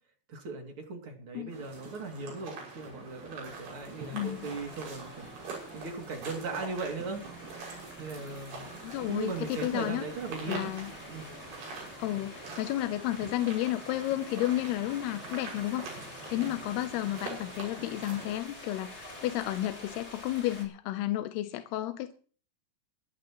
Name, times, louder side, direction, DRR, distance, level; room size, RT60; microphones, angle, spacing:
voice 1, 0.3-7.2 8.0-8.8 9.1-10.7 11.1-11.3 16.3-16.6, right 4 dB, 35° right, 2 dB, 2.9 m, -38 dB
sound 1, 1.5-18.4, right 3 dB, 85° right, 8.4 m, -44 dB
sound 2, 2.6-20.6, left 2 dB, 15° left, 3.4 m, -48 dB
voice 2, 4.1-4.5 8.8-10.0 10.5-10.9 12.0-15.9 16.3-22.1, left 14 dB, 75° left, 9 dB, 2.7 m, -32 dB
24.0 x 11.0 x 3.1 m, 0.42 s
omnidirectional pair, 4.9 m